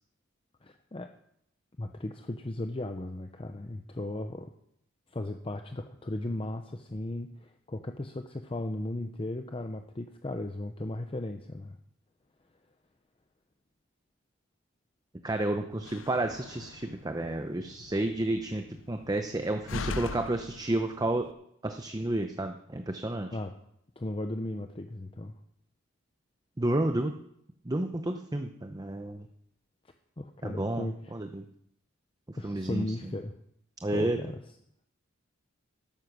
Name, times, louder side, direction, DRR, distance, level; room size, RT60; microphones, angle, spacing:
voice 1, 0.6-1.1 1.8-4.5 5.1-11.8 23.3-23.5 24.0-25.4 30.2-31.1 32.4-33.3 33.9-34.4, left 1 dB, 25° left, 6 dB, 0.7 m, -36 dB
voice 2, 15.2-21.3 21.6-23.3 26.6-27.1 27.6-29.2 30.4-31.4 32.4-32.8 33.8-34.2, right 1 dB, 20° right, 6 dB, 0.7 m, -31 dB
Slam, 15.7-21.3, left 4 dB, 65° left, 0.6 m, -42 dB
13.0 x 10.0 x 6.1 m, 0.73 s
head